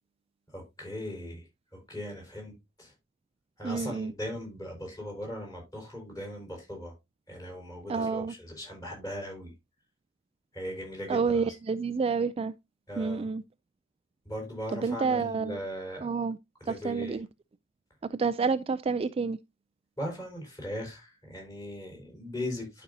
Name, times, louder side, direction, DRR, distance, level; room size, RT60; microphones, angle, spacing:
voice 1, 0.5-1.5 1.7-2.5 2.8-2.9 3.6-6.9 7.3-9.5 10.5-11.5 12.9-13.3 14.2-16.1 16.6-17.2 20.0-22.8, left 1 dB, 20° left, 4.9 m, -39 dB
voice 2, 3.6-4.1 7.9-8.3 11.1-12.5 13.0-13.4 14.7-15.6 16.0-16.4 16.7-17.3 18.0-19.4, right 5 dB, 30° right, 0.3 m, -29 dB
12.0 x 5.3 x 2.7 m
head